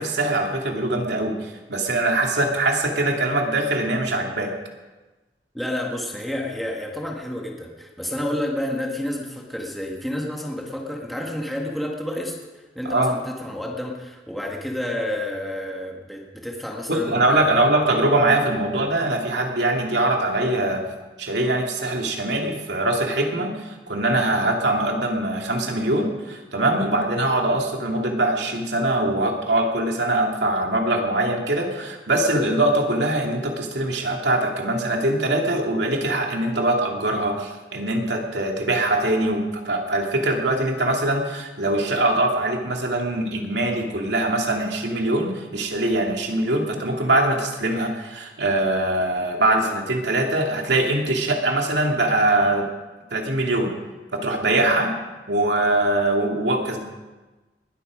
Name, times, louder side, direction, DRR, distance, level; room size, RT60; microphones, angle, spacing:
voice 1, 0.0-4.5 12.8-13.1 16.9-20.9 21.2-52.7 53.1-53.7 54.1-54.9 55.3-56.8, right 1 dB, 75° right, 1 dB, 2.6 m, -22 dB
voice 2, 5.5-17.7, left 1 dB, ahead, -1 dB, 1.9 m, -30 dB
20.5 x 13.0 x 5.1 m, 1.2 s
head